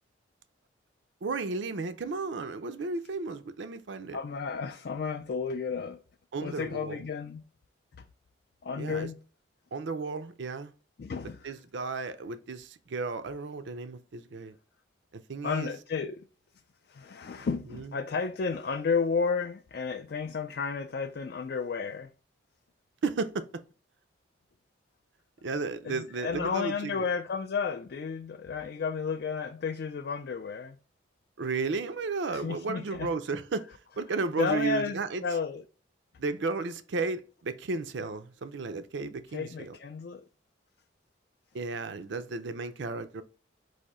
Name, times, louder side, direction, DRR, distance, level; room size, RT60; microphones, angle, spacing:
voice 1, 1.2-4.2 6.3-7.0 8.8-9.1 9.7-10.7 11.4-14.6 15.3-15.7 17.4-17.5 17.7-17.9 23.0-23.6 25.4-27.0 31.4-33.7 34.0-35.2 36.2-39.8 41.5-43.2, right 4 dB, 65° right, 0.5 m, -33 dB
voice 2, 4.1-6.0 6.4-7.4 8.0-8.1 8.6-9.2 11.0-11.5 15.4-16.3 16.9-22.1 25.8-30.8 32.3-33.1 34.4-35.6 39.3-40.3, left 5 dB, 55° left, 0.3 m, -32 dB
4.8 x 2.6 x 4.1 m
head